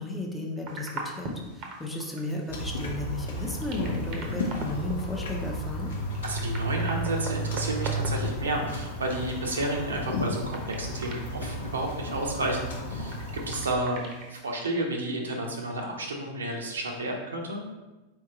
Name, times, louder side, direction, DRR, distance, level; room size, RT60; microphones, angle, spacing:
voice 1, 0.0-5.9, left 2 dB, 10° left, 0 dB, 0.7 m, -34 dB
sound 1, 0.7-14.6, right 2 dB, 40° right, 0.8 m, -43 dB
sound 2, 2.5-13.7, equal, 65° left, 0.8 m, -33 dB
voice 2, 6.2-14.0 14.3-17.6, right 1 dB, 70° right, 1 dB, 0.7 m, -31 dB
4.5 x 3.4 x 3.0 m, 1.1 s
figure-of-eight pair, 90°, 0 cm